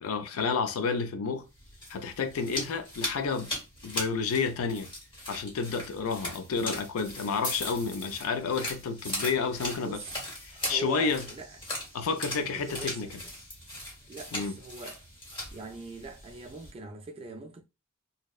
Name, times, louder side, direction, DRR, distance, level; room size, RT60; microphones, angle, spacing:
voice 1, 0.0-1.4 1.9-3.5 3.8-4.9 5.3-10.0 10.4-11.3 11.9-13.1 14.3-14.6, left 5 dB, 65° left, 0.4 m, -30 dB
sound 1, 1.5-16.7, left 1 dB, 20° left, 0.9 m, -39 dB
voice 2, 9.8-10.2 10.5-11.5 12.3-13.1 14.1-15.0 15.5-17.6, right 3 dB, 25° right, 0.3 m, -42 dB
2.6 x 2.0 x 2.2 m
head